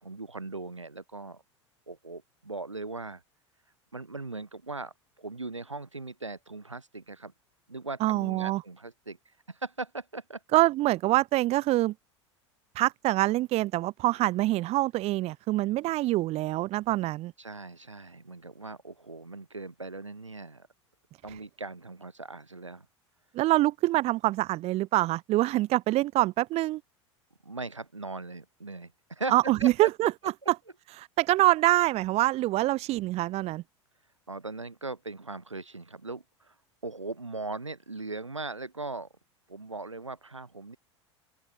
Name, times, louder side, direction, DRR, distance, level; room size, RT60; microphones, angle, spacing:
voice 1, 0.0-1.4 1.9-3.2 3.9-7.3 7.7-9.2 9.5-10.4 17.4-20.7 21.2-22.9 27.4-29.9 34.3-36.5 36.8-39.1 39.5-40.8, right 3 dB, 85° right, 7.3 m, -39 dB
voice 2, 8.0-8.6 10.5-11.9 12.8-17.3 23.3-26.8 29.3-30.1 30.5-30.6 31.0-33.6, right 17 dB, 45° right, 3.5 m, -25 dB
open air
figure-of-eight pair, 80°, 15 cm